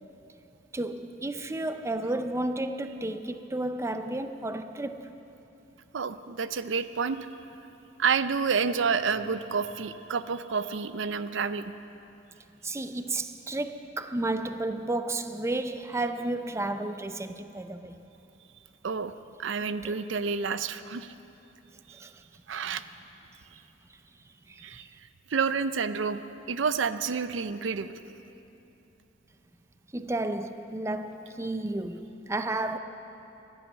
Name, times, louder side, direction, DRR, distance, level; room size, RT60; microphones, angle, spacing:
voice 1, 0.7-5.1 12.6-18.0 19.6-20.0 21.9-22.2 24.5-25.0 29.9-32.8, right 2 dB, 15° right, 0.5 m, -32 dB
voice 2, 5.9-7.2 8.0-11.7 18.8-19.1 19.4-21.1 21.9-22.0 22.5-22.8 24.6-24.9 25.3-26.2 26.5-28.0, right 5 dB, 80° right, 0.5 m, -29 dB
14.0 x 11.0 x 9.1 m
head